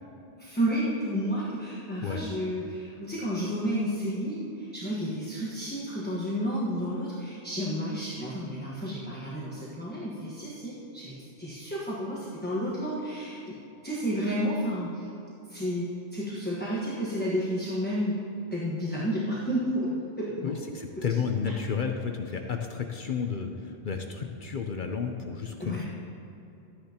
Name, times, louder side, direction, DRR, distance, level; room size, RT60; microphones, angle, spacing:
voice 1, 0.4-13.6 13.8-15.1 15.5-18.2 18.5-19.9 20.2-20.5 25.6-25.9, equal, 10° left, -7 dB, 1.2 m, -31 dB
voice 2, 20.4-25.9, left 6 dB, 55° left, 4 dB, 0.7 m, -32 dB
13.0 x 9.8 x 2.9 m, 2.9 s
omnidirectional pair, 1.2 m